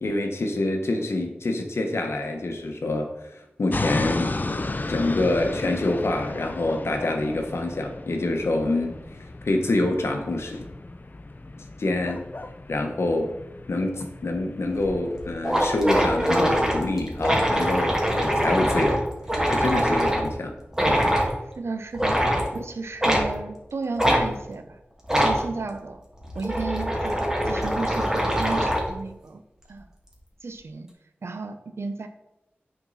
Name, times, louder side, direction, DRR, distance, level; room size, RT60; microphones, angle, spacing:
voice 1, 0.0-4.3 4.9-9.0 9.4-10.7 11.8-12.2 12.7-13.3 13.7-19.0 19.5-20.5 20.9-21.1, left 2 dB, 80° left, 3 dB, 1.2 m, -26 dB
sound 1, 3.7-15.6, left 2 dB, 45° left, 0.6 m, -34 dB
sound 2, 14.8-14.9 15.2-15.3 15.4-20.3 20.7-21.3 21.9-22.5 23.0-23.3 24.0-24.2 25.0-25.4 26.2-28.9, equal, 10° right, 2.2 m, -23 dB
voice 2, 21.6-22.2 22.5-24.8 25.1-26.0 26.3-29.4 29.7-29.9 30.4-30.9 31.2-32.1, right 4 dB, 85° right, 8 dB, 0.7 m, -33 dB
9.3 x 4.5 x 4.1 m, 0.93 s
cardioid pair, 45°, 4 cm